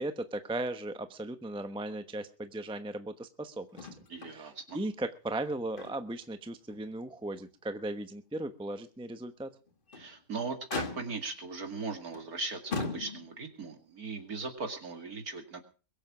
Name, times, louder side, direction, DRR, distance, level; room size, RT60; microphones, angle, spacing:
voice 1, 0.0-3.9 4.3-9.5, right 1 dB, 5° right, 9 dB, 0.7 m, -37 dB
Motor vehicle (road), 3.7-4.4 4.7-4.8 5.3-6.3 6.7-6.8 7.4-7.5 9.7-10.1 10.7-11.4 12.1-12.3 12.7-13.5 14.6-14.7, left 3 dB, 30° left, 1.6 m, -39 dB
voice 2, 4.1-4.8 10.0-15.6, right 4 dB, 60° right, 6 dB, 2.7 m, -39 dB
22.5 x 7.7 x 6.1 m, 0.37 s
omnidirectional pair, 1.8 m